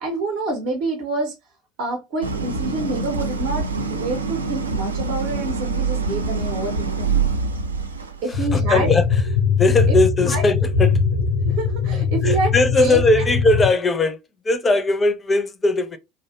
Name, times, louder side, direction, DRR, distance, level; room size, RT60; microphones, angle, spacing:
voice 1, 0.0-1.3 1.8-7.1 8.2-8.9 9.9-10.0 10.2-10.4 11.4-13.0, right 2 dB, 55° right, 0.7 m, -27 dB
Idling, 2.2-8.3, right 4 dB, 85° right, 0.3 m, -25 dB
sound 1, 8.3-13.7, left 5 dB, 80° left, 0.4 m, -21 dB
voice 2, 8.3-9.1 9.6-11.0 12.2-14.2 14.4-16.0, left 2 dB, 20° left, 0.4 m, -19 dB
2.5 x 2.1 x 2.3 m
figure-of-eight pair, 70°, 0 cm